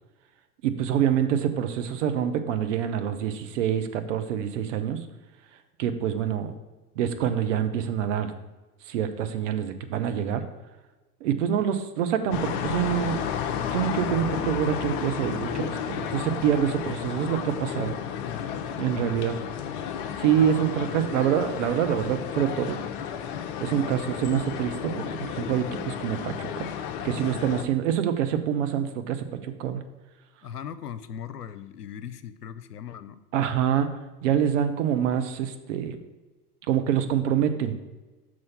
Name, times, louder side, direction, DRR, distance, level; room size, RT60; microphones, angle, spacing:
voice 1, 0.6-5.0 5.8-6.6 7.0-8.3 8.9-10.4 11.2-13.2 13.7-17.9 18.8-19.4 20.2-22.8 23.6-26.7 27.0-29.8 33.3-33.9 34.2-36.0 36.7-37.8, right 9 dB, 50° right, 8 dB, 0.8 m, -26 dB
sound 1, 12.3-27.6, left 8 dB, 35° left, 0.5 m, -32 dB
voice 2, 30.4-33.2, left 8 dB, 85° left, 12 dB, 0.6 m, -39 dB
6.3 x 4.4 x 5.6 m, 1.2 s
figure-of-eight pair, 90°, 46 cm